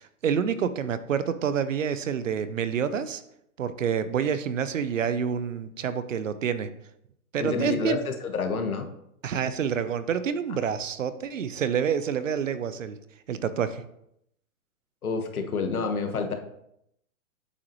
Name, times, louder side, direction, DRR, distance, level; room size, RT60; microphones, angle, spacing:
voice 1, 0.0-3.2 3.6-6.7 7.3-8.0 9.2-13.0 13.3-13.8, right 7 dB, 60° right, 13 dB, 0.8 m, -28 dB
voice 2, 7.4-8.9 15.0-16.3, left 4 dB, 90° left, 5 dB, 1.6 m, -28 dB
8.4 x 7.5 x 3.1 m, 0.76 s
hypercardioid pair, 165°, 42 cm